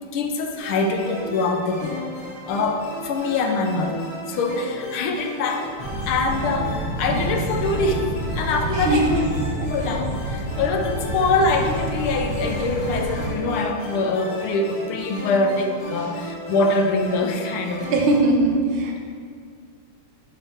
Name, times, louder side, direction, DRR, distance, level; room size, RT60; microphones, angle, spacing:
voice 1, 0.1-2.0 2.5-5.7 6.1-8.1 8.3-9.2 9.7-17.9, left 3 dB, 80° left, 4 dB, 1.4 m, -24 dB
sound 1, 0.6-18.2, left 1 dB, 50° left, 1.5 m, -36 dB
sound 2, 5.8-13.3, right 1 dB, 25° left, 1.2 m, -28 dB
voice 2, 8.7-9.2 16.0-16.2 17.9-19.0, right 2 dB, 70° right, 1 dB, 1.5 m, -21 dB
5.7 x 5.0 x 4.3 m, 2.1 s
omnidirectional pair, 2.4 m